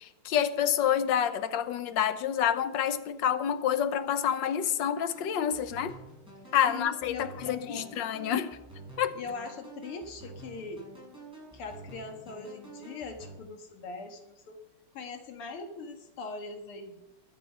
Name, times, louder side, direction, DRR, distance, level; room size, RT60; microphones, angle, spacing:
voice 1, 0.0-6.0 6.5-8.6 9.0-9.2, left 9 dB, 65° left, 1.4 m, -28 dB
sound 1, 5.1-13.4, right 3 dB, ahead, 6.2 m, -49 dB
voice 2, 6.7-7.9 9.2-10.9 11.5-14.6 14.9-17.0, left 4 dB, 90° left, 2.4 m, -41 dB
21.5 x 7.4 x 5.4 m
omnidirectional pair, 2.3 m